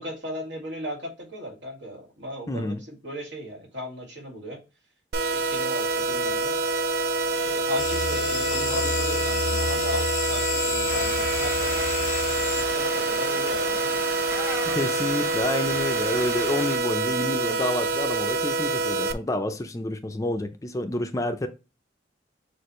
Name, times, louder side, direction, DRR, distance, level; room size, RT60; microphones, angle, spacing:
voice 1, 0.0-4.6 5.2-6.5 7.3-11.9 12.2-14.0, left 1 dB, 80° right, 2.1 m, -36 dB
voice 2, 2.5-2.8 14.6-21.5, left 1 dB, 20° left, 0.5 m, -29 dB
sound 1, 5.1-19.1, right 3 dB, 60° right, 0.5 m, -26 dB
sound 2, 7.8-13.3, left 7 dB, 70° left, 0.5 m, -31 dB
sound 3, 10.9-16.8, right 1 dB, 15° right, 0.9 m, -36 dB
6.5 x 2.5 x 3.0 m
head